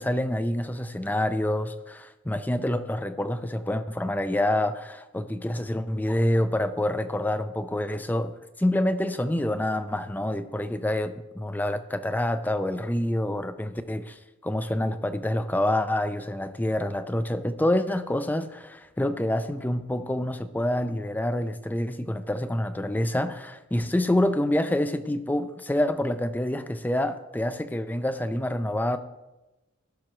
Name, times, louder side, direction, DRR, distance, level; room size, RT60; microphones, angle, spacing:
voice 1, 0.0-29.0, left 1 dB, 10° left, 10 dB, 0.4 m, -27 dB
16.5 x 6.2 x 3.1 m, 1.0 s
head